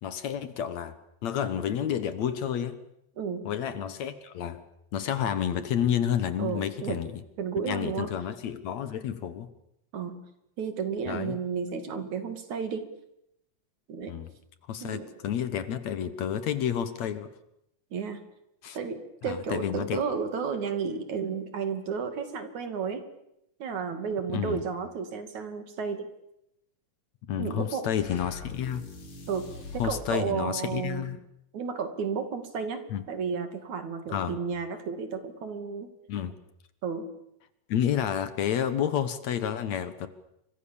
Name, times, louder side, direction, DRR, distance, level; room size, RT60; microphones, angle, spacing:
voice 1, 0.0-1.0 1.2-2.8 3.5-4.6 4.9-7.1 7.7-9.5 11.1-11.4 14.1-14.3 14.7-17.3 18.6-18.8 19.3-20.0 24.3-24.6 27.3-28.9 29.8-31.2 32.9-33.0 34.1-34.4 36.1-36.3 37.7-40.1, left 9 dB, 65° left, 12 dB, 2.3 m, -30 dB
voice 2, 3.2-3.5 6.4-7.0 7.4-8.1 9.9-10.2 10.6-12.9 13.9-14.2 14.8-15.1 17.9-18.2 18.7-23.0 23.6-26.1 27.4-27.9 29.3-31.1 31.5-35.9 36.8-37.1, right 6 dB, 65° right, 8 dB, 3.8 m, -32 dB
sound 1, 28.0-30.1, left 3 dB, 85° left, 6.2 m, -42 dB
29.0 x 25.0 x 7.2 m, 0.82 s
omnidirectional pair, 3.7 m